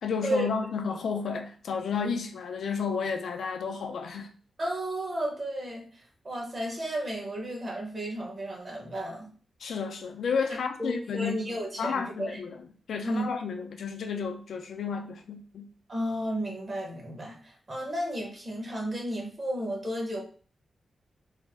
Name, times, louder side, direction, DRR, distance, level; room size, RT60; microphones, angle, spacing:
voice 1, 0.0-4.3 9.6-11.5 11.8-15.7, left 5 dB, 85° left, 0.4 m, -32 dB
voice 2, 4.6-9.3 10.8-12.4 13.0-13.2 15.9-20.2, right 1 dB, 35° right, 1.0 m, -33 dB
3.2 x 2.1 x 3.4 m
wide cardioid pair, 140°, 0 cm